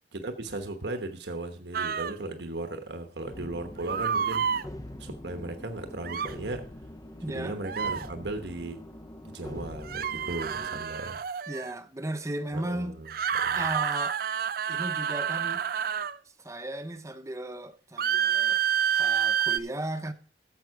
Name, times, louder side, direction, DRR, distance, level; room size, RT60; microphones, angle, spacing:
voice 1, 0.1-4.5 5.0-6.6 7.3-8.8 9.2-11.2 12.5-13.6, right 2 dB, 75° right, 1.1 m, -36 dB
sound 1, 1.7-2.1 3.9-4.6 6.0-6.3 7.6-8.1 9.8-11.7 13.1-16.2 18.0-19.6, right 8 dB, 55° right, 0.5 m, -28 dB
sound 2, 3.3-10.8, left 1 dB, 20° left, 0.6 m, -44 dB
voice 2, 7.2-7.6 11.5-12.9 13.5-14.2 14.7-15.6 16.4-18.6 18.9-20.1, right 1 dB, 20° right, 0.8 m, -35 dB
13.0 x 7.4 x 4.7 m
head